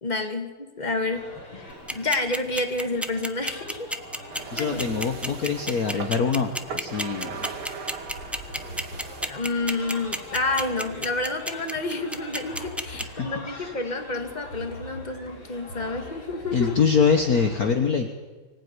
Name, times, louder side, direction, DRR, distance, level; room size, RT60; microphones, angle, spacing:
voice 1, 0.0-1.2 1.5-4.0 4.5-4.8 9.2-16.7, left 2 dB, 20° left, 6 dB, 2.1 m, -29 dB
sound 1, 1.1-17.7, left 1 dB, 85° left, 5.6 m, -42 dB
sound 2, 1.7-13.0, equal, ahead, 0.4 m, -30 dB
sound 3, 4.3-9.3, right 5 dB, 80° right, 2.7 m, -39 dB
voice 2, 4.5-7.5 13.2-13.7 16.5-18.1, left 6 dB, 45° left, 6 dB, 1.6 m, -24 dB
24.5 x 16.0 x 9.7 m, 1.3 s
omnidirectional pair, 2.4 m